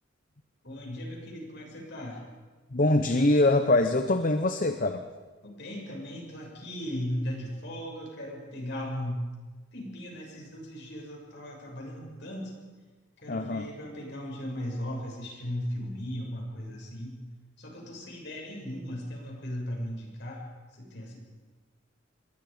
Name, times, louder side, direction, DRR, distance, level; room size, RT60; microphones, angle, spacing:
voice 1, 0.6-2.2 5.4-9.2 9.7-12.5 13.2-17.2 17.6-20.4 20.8-21.2, equal, 60° left, -1 dB, 6.8 m, -37 dB
voice 2, 2.7-5.1 13.3-13.7, left 2 dB, 40° left, 8 dB, 0.9 m, -24 dB
27.0 x 21.5 x 5.2 m, 1.4 s
head